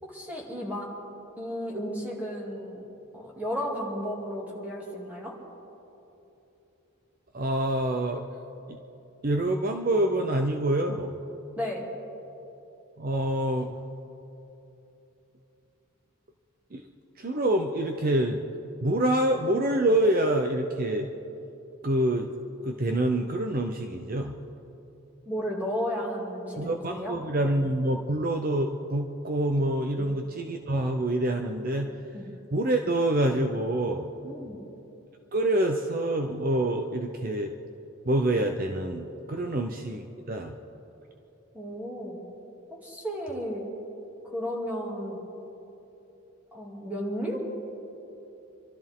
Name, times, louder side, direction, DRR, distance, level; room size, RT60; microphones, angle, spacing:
voice 1, 0.0-0.9 1.4-2.8 3.1-5.3 11.6-11.9 25.3-27.2 29.9-30.2 32.1-32.3 34.2-34.6 39.4-39.5 41.5-42.3 42.8-43.7 44.2-45.2 46.5-47.4, equal, 10° right, -4 dB, 2.5 m, -33 dB
voice 2, 7.3-8.2 8.7-8.8 9.2-11.1 13.0-13.7 16.7-16.8 17.2-18.4 18.8-21.1 21.8-22.3 22.6-24.4 26.6-31.9 32.5-34.1 35.3-37.5 38.0-40.5, right 1 dB, 40° right, 4 dB, 0.7 m, -26 dB
26.5 x 13.0 x 3.7 m, 3.0 s
head